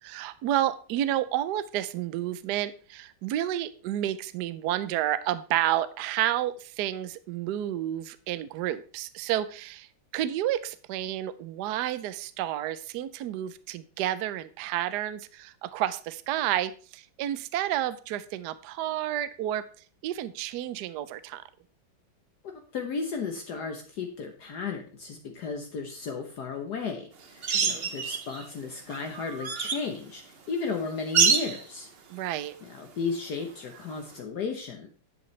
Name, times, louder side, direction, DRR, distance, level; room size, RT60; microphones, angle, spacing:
voice 1, 0.0-9.9 10.1-19.6 20.0-21.4 27.5-27.9 32.1-32.6, right 12 dB, 70° right, 14 dB, 1.1 m, -30 dB
voice 2, 22.7-31.9 32.6-34.9, left 5 dB, 60° left, 4 dB, 1.4 m, -34 dB
sound 1, 27.4-28.5 28.9-29.9 31.1-31.6 33.9-34.0, right 5 dB, 45° right, 0.8 m, -26 dB
11.0 x 8.1 x 3.2 m, 0.39 s
omnidirectional pair, 2.1 m